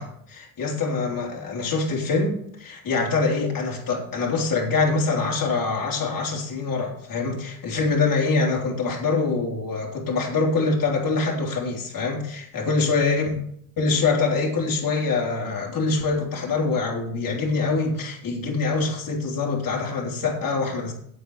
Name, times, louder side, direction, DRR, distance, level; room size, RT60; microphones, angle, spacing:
voice 1, 0.0-13.4 13.8-20.9, left 3 dB, 45° left, -1 dB, 3.6 m, -24 dB
8.3 x 8.3 x 6.6 m, 0.68 s
cardioid pair, 95°, 44 cm